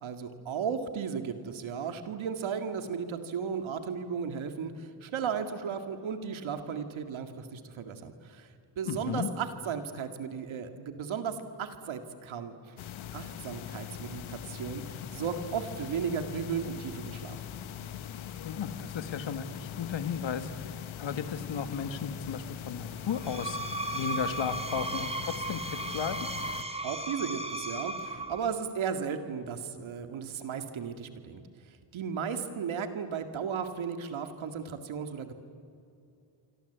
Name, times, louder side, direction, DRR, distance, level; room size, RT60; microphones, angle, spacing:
voice 1, 0.0-8.5 8.8-12.7 13.1-17.4 26.8-31.4 31.9-35.3, right 6 dB, 85° right, 7 dB, 2.2 m, -35 dB
voice 2, 8.9-9.3 18.4-23.6 23.9-26.2, left 7 dB, 70° left, 10 dB, 1.9 m, -35 dB
sound 1, 12.8-26.6, left 9 dB, 90° left, 1.2 m, -41 dB
Screech, 23.1-28.6, right 2 dB, 15° right, 2.8 m, -36 dB
28.0 x 24.5 x 8.2 m, 2.6 s
cardioid pair, 55°, 46 cm